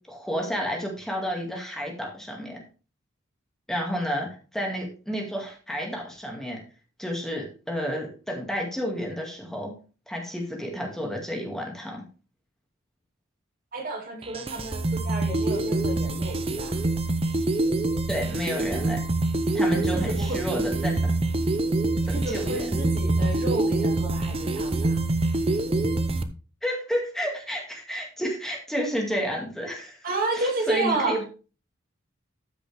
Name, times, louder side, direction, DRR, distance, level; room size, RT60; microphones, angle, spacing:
voice 1, 0.1-2.6 3.7-6.6 7.0-9.7 10.1-12.0 18.1-19.0 19.5-20.9 22.1-22.7 26.6-30.0 30.3-31.2, equal, ahead, 0 dB, 2.2 m, -30 dB
voice 2, 13.7-16.8 19.7-20.4 22.1-25.0 30.0-31.2, right 2 dB, 45° right, 1 dB, 2.4 m, -31 dB
sound 1, 14.2-26.2, right 2 dB, 30° right, 0.7 m, -25 dB
13.5 x 6.0 x 3.5 m, 0.35 s
head